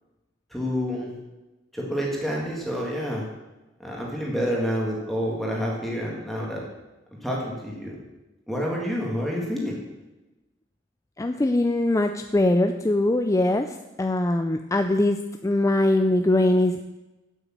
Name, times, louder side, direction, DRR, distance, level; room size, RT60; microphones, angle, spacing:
voice 1, 0.5-1.2 1.7-3.3 3.8-6.6 7.2-8.0 8.5-9.8, equal, ahead, -3 dB, 1.8 m, -28 dB
voice 2, 11.2-16.8, left 1 dB, 15° left, 6 dB, 0.4 m, -22 dB
8.5 x 8.1 x 7.2 m, 1.1 s
head